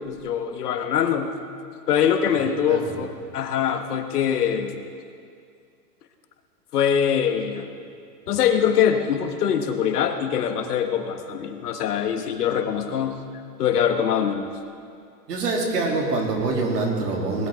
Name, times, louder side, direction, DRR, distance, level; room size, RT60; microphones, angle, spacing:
voice 1, 0.0-1.4 1.9-3.1 3.3-4.9 6.7-7.7 8.3-13.2 13.6-14.5, left 8 dB, 70° left, 6 dB, 1.5 m, -23 dB
voice 2, 2.6-3.0 15.3-17.5, right 3 dB, 75° right, -1 dB, 3.4 m, -25 dB
19.0 x 13.0 x 3.7 m, 2.3 s
hypercardioid pair, 140°, 48 cm